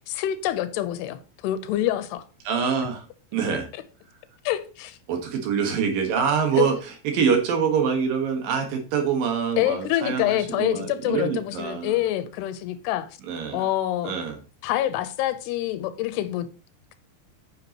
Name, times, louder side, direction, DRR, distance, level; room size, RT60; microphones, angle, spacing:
voice 1, 0.1-1.2 1.4-2.2 4.5-5.0 6.6-6.7 9.6-13.1 13.5-14.1 14.6-16.5, left 13 dB, 80° left, 2.8 m, -26 dB
voice 2, 2.4-3.1 3.3-3.7 5.1-12.0 13.2-13.7 14.0-14.4, right 6 dB, 60° right, 3.1 m, -25 dB
9.4 x 8.4 x 3.0 m
omnidirectional pair, 4.9 m